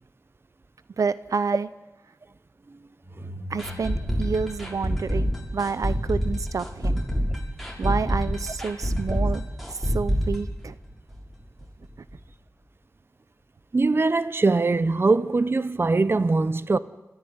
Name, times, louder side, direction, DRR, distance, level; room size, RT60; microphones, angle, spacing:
voice 1, 1.0-1.7 3.5-7.0 7.8-9.4 9.7-10.8, right 5 dB, 80° right, 0.7 m, -29 dB
sound 1, 3.0-9.6, equal, 25° right, 4.7 m, -44 dB
sound 2, 3.6-11.3 11.6-11.7 12.1-12.2, equal, ahead, 6.4 m, -26 dB
voice 2, 13.7-16.8, right 3 dB, 45° right, 0.8 m, -22 dB
29.0 x 13.5 x 9.7 m
wide cardioid pair, 75°, 6 cm